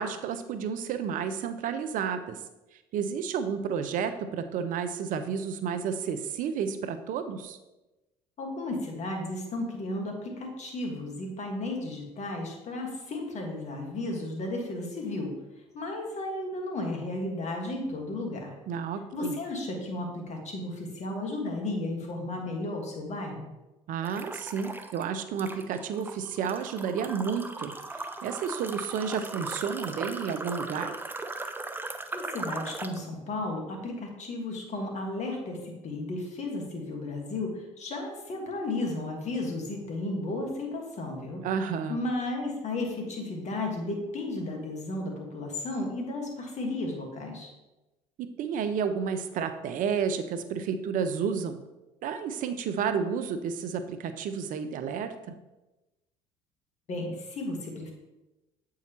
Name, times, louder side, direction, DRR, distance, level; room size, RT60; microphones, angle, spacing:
voice 1, 0.0-2.4 2.9-7.6 18.7-19.4 23.9-30.9 41.4-42.0 48.2-51.6 52.0-55.1, right 6 dB, 60° right, 10 dB, 0.6 m, -31 dB
voice 2, 8.4-15.4 15.7-18.5 19.1-23.5 32.1-41.5 41.9-47.5 56.9-57.9, left 2 dB, 50° left, 2 dB, 1.7 m, -34 dB
sound 1, 24.0-25.0 25.4-33.0, right 2 dB, 15° right, 0.6 m, -38 dB
8.1 x 4.7 x 3.0 m, 1.0 s
hypercardioid pair, 65°, 16 cm